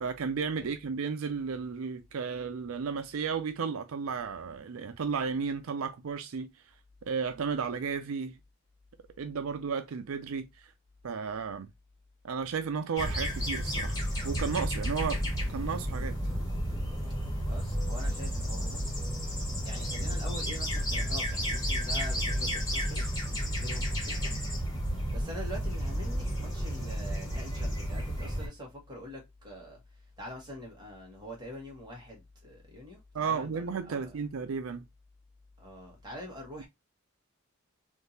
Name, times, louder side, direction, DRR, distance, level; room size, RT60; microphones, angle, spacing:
voice 1, 0.0-6.5 7.1-8.3 9.2-10.5 11.0-11.7 12.2-14.0 14.2-15.2 15.5-16.2 33.1-34.9, right 5 dB, 80° right, 0.5 m, -33 dB
sound 1, 13.0-28.5, equal, 20° left, 1.7 m, -32 dB
voice 2, 17.4-19.0 19.2-19.3 19.6-23.1 23.5-24.3 25.1-34.2 35.6-36.7, left 1 dB, 20° right, 1.4 m, -45 dB
3.6 x 2.7 x 2.7 m
head